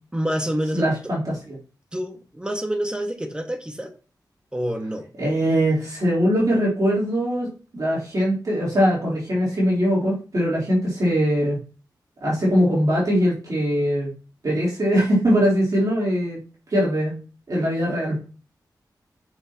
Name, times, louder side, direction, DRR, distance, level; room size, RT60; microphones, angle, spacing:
voice 1, 0.1-1.1 1.9-3.9 4.5-5.1, equal, 10° right, 5 dB, 1.2 m, -27 dB
voice 2, 0.7-1.6 5.2-11.6 12.2-14.1 14.4-16.4 16.7-17.2 17.5-18.1, equal, 55° right, -6 dB, 3.3 m, -21 dB
6.5 x 5.9 x 2.9 m, 0.35 s
wide cardioid pair, 90°, 7 cm